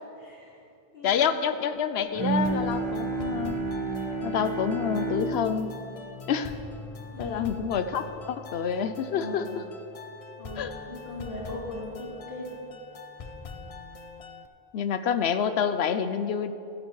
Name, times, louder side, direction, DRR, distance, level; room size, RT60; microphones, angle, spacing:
voice 1, 0.2-0.6 0.9-1.3 7.1-7.6 9.1-9.5 10.4-12.6 13.2-13.6, left 1 dB, 60° left, -5 dB, 2.6 m, -39 dB
voice 2, 1.0-3.6 4.2-5.8 6.3-6.5 7.2-9.4 10.6-10.7 14.7-16.5, left 7 dB, 75° left, 10 dB, 0.8 m, -27 dB
Bowed string instrument, 2.1-7.6, right 3 dB, 25° right, 1.2 m, -31 dB
sound 1, 2.3-14.5, left 4 dB, 40° left, 0.6 m, -44 dB
14.0 x 13.5 x 3.2 m, 2.7 s
omnidirectional pair, 1.1 m